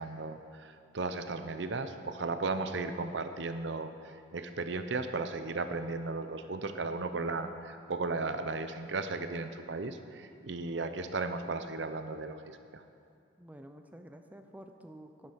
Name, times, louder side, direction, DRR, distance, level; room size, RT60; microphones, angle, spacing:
voice 1, 0.0-12.8, right 3 dB, 65° right, 9 dB, 0.7 m, -35 dB
voice 2, 13.4-15.3, right 1 dB, 10° right, 6 dB, 0.4 m, -50 dB
11.0 x 10.0 x 5.7 m, 2.4 s
head